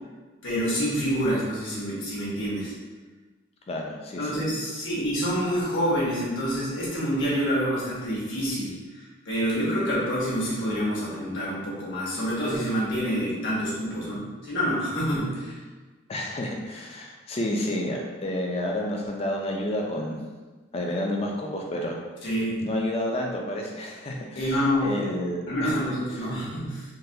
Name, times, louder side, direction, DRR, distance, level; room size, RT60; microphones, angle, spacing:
voice 1, 0.4-2.7 4.2-15.5 22.2-22.6 24.3-24.9 25.5-26.8, equal, 60° left, -7 dB, 1.1 m, -27 dB
voice 2, 3.7-4.4 16.1-20.2 20.7-22.0 22.6-25.7 26.2-26.3, left 1 dB, 30° left, 0 dB, 0.4 m, -30 dB
3.9 x 2.2 x 2.7 m, 1.3 s
head